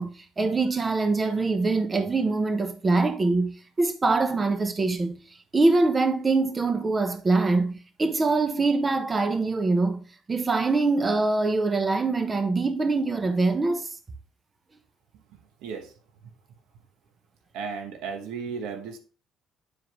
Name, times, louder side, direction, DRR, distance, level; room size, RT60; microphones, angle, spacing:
voice 1, 0.0-3.5 3.8-5.2 5.5-10.0 10.3-13.9, right 3 dB, 30° right, 1.2 m, -24 dB
voice 2, 17.5-19.0, right 5 dB, 80° right, 1.2 m, -34 dB
9.7 x 4.8 x 3.3 m
supercardioid pair, 80°, 0 cm